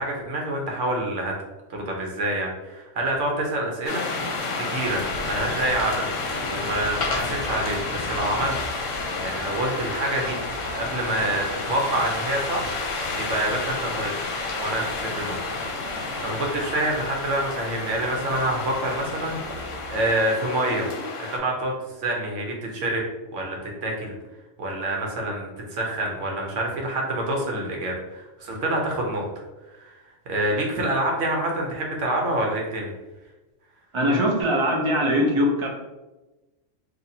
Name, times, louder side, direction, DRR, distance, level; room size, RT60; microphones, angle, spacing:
voice 1, 0.0-1.3 1.7-4.1 4.6-6.0 6.4-8.6 9.2-10.4 10.7-12.7 13.1-14.1 14.6-15.4 16.2-20.9 21.2-21.7 22.0-23.0 23.3-24.1 24.6-29.3 29.8-30.0 30.3-32.9, right 1 dB, 75° right, 0 dB, 1.1 m, -27 dB
sound 1, 3.9-21.4, left 3 dB, 80° left, 1.0 m, -30 dB
voice 2, 33.9-35.7, equal, 35° right, -1 dB, 0.5 m, -21 dB
4.0 x 2.7 x 2.7 m, 1.1 s
omnidirectional pair, 1.3 m